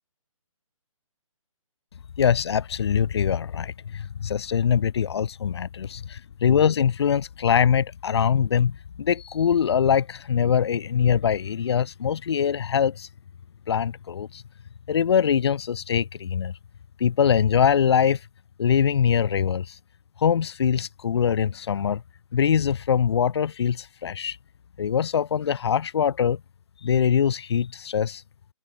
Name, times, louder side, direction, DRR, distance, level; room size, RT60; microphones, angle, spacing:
voice 1, 2.2-13.1 13.7-14.4 14.9-16.5 17.0-18.2 18.6-19.8 20.2-22.0 22.3-24.4 24.8-26.4 26.8-28.2, left 8 dB, 50° left, 0.4 m, -23 dB
open air
hypercardioid pair, 165°, 18 cm